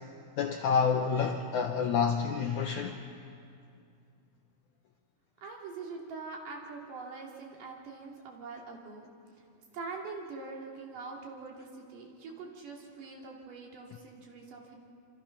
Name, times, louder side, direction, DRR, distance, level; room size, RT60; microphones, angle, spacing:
voice 1, 0.4-3.0, left 6 dB, 75° left, 1.8 m, -28 dB
voice 2, 5.4-9.1 9.7-14.8, right 4 dB, 55° right, 4.0 m, -43 dB
27.0 x 26.5 x 5.9 m
omnidirectional pair, 4.6 m